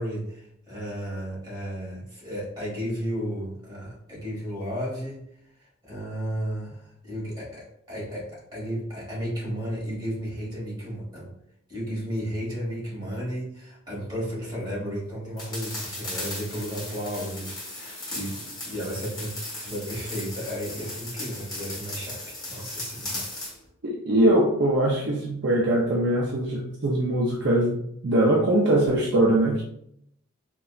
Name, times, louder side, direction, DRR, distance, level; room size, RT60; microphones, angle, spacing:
voice 1, 0.0-5.2 5.6-11.3 11.7-23.2, equal, 20° right, -6 dB, 1.4 m, -33 dB
sound 1, 15.4-23.6, left 1 dB, 20° left, 0.9 m, -36 dB
voice 2, 23.8-29.6, right 1 dB, 55° right, -2 dB, 0.5 m, -22 dB
3.9 x 2.2 x 2.3 m, 0.72 s
head